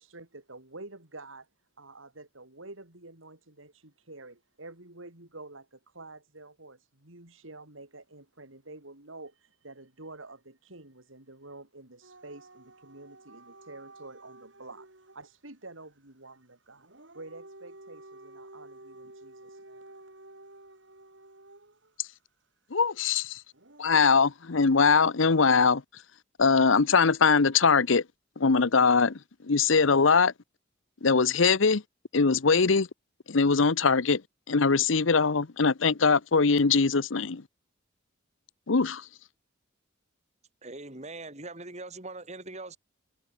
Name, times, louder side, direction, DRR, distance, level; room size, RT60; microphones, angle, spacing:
voice 1, 0.0-1.5 1.8-16.9 17.1-19.9, right 2 dB, 80° right, 4.7 m, -48 dB
Dog / Siren, 12.0-15.3 16.7-21.9 23.5-23.9, right 2 dB, 65° right, 6.1 m, -51 dB
voice 2, 22.7-23.4 23.8-25.8 26.4-28.0 28.4-29.2 29.4-30.3 31.0-31.8 32.1-32.9 33.3-34.2 34.5-37.4 38.7-39.0, left 5 dB, 75° left, 0.9 m, -22 dB
voice 3, 40.6-42.8, right 2 dB, 35° right, 3.9 m, -41 dB
head